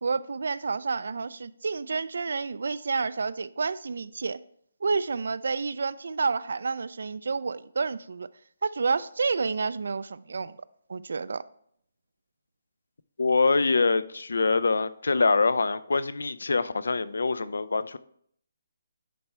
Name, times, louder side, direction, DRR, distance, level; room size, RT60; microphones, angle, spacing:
voice 1, 0.0-4.4 4.8-8.3 8.6-10.6 10.9-11.4, right 4 dB, 70° right, 0.3 m, -29 dB
voice 2, 13.2-18.0, left 3 dB, 90° left, 0.4 m, -24 dB
10.0 x 3.4 x 4.3 m
hypercardioid pair, 170°, 0 cm